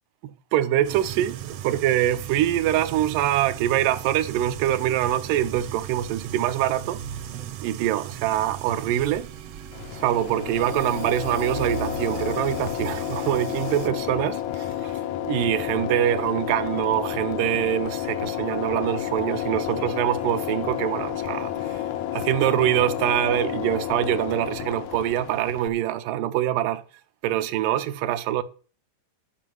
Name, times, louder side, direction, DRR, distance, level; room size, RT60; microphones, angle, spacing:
voice 1, 0.5-7.0 7.6-9.3 9.9-14.9 15.2-21.8 22.1-26.8 27.2-28.4, right 12 dB, 85° right, 2.3 m, -24 dB
sound 1, 0.8-13.9, right 9 dB, 70° right, 1.6 m, -37 dB
sound 2, 9.7-25.7, left 11 dB, 80° left, 1.6 m, -31 dB
sound 3, 18.1-26.2, left 8 dB, 60° left, 1.0 m, -43 dB
12.0 x 5.4 x 7.5 m
omnidirectional pair, 3.8 m